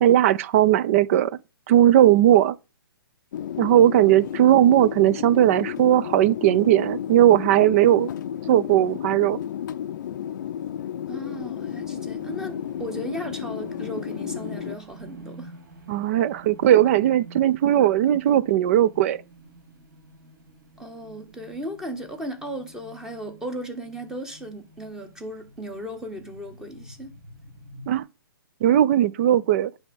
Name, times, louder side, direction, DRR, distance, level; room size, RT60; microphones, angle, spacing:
voice 1, 0.0-1.3 1.7-2.6 3.6-8.1 8.5-9.4 15.9-19.2 27.9-28.0 28.6-29.7, right 12 dB, 35° right, 0.5 m, -18 dB
sound 1, 3.3-14.8, left 10 dB, 50° left, 0.5 m, -33 dB
voice 2, 11.1-15.5 20.8-27.1, equal, 5° right, 1.2 m, -36 dB
sound 2, 11.4-28.0, right 2 dB, 55° right, 3.6 m, -48 dB
9.9 x 3.5 x 6.9 m
hypercardioid pair, 145°, 12 cm